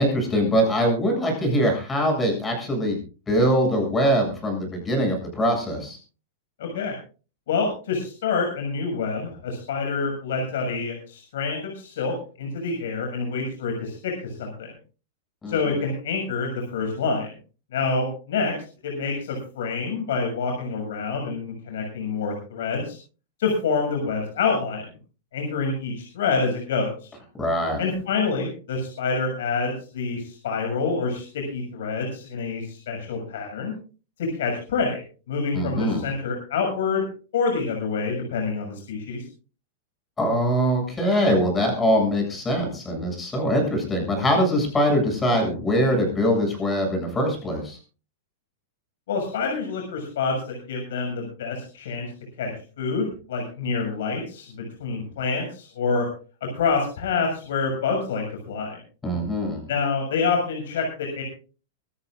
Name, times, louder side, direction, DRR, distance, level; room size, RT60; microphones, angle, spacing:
voice 1, 0.0-3.0 3.3-6.0 15.4-15.6 27.4-27.8 35.5-36.0 40.2-47.8 59.0-59.7, equal, 15° left, 2 dB, 7.6 m, -22 dB
voice 2, 6.6-7.0 7.5-14.7 15.5-17.3 17.7-18.5 18.8-23.0 23.4-24.8 25.3-27.1 27.8-33.7 34.2-35.0 35.3-37.0 37.3-39.2 49.1-52.1 52.4-52.5 52.8-56.1 56.4-58.8 59.7-61.2, left 4 dB, 75° left, 2 dB, 6.8 m, -27 dB
25.0 x 13.5 x 2.5 m, 0.36 s
supercardioid pair, 150°, 0 cm